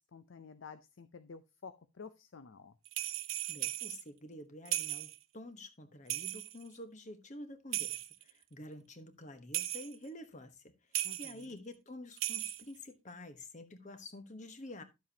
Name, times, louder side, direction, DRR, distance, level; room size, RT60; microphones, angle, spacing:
voice 1, 0.0-2.8 11.0-11.6, left 5 dB, 65° left, 0.5 m, -51 dB
sound 1, 2.9-4.0 4.7-5.2 6.1-6.7 7.7-8.3 9.5-10.0 10.9-11.4 12.1-12.8, right 15 dB, 75° right, 0.7 m, -37 dB
voice 2, 3.5-14.8, left 1 dB, 35° left, 1.1 m, -49 dB
11.5 x 7.5 x 2.8 m
head